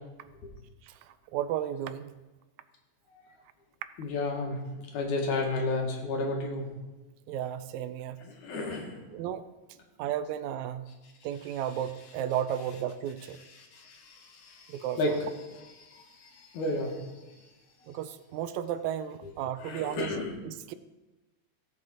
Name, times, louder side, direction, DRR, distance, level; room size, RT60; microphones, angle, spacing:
voice 1, 0.8-2.1 7.3-8.3 9.1-9.4 10.0-11.0 11.2-13.4 14.7-15.2 17.9-20.7, right 10 dB, 80° right, 12 dB, 1.9 m, -34 dB
voice 2, 4.0-4.6 4.9-6.7 8.2-9.0 13.7-15.1 15.9-17.0 19.6-20.3, left 2 dB, 90° left, 1 dB, 3.1 m, -32 dB
15.5 x 7.4 x 4.3 m, 1.1 s
omnidirectional pair, 3.3 m